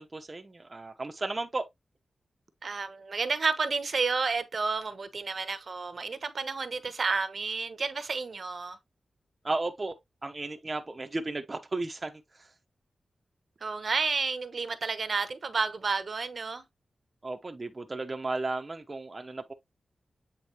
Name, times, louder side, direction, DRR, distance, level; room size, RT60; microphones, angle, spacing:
voice 1, 0.0-1.7 9.4-10.0 10.2-12.2 17.2-19.5, right 2 dB, 30° right, 0.9 m, -34 dB
voice 2, 2.6-8.8 13.6-16.6, right 4 dB, 55° right, 1.1 m, -31 dB
8.4 x 4.1 x 2.9 m
wide cardioid pair, 85°, 0 cm